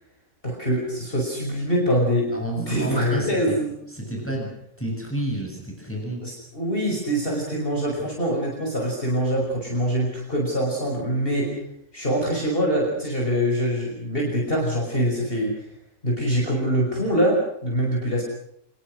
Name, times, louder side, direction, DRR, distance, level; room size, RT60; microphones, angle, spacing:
voice 1, 0.4-2.3 2.7-3.7 6.2-11.5 11.9-15.5 16.0-18.2, equal, 40° left, -1 dB, 5.9 m, -24 dB
voice 2, 2.3-3.6 3.9-4.5 4.8-6.2, right 1 dB, 10° left, 0 dB, 7.5 m, -30 dB
26.5 x 21.5 x 6.5 m, 0.77 s
omnidirectional pair, 1.5 m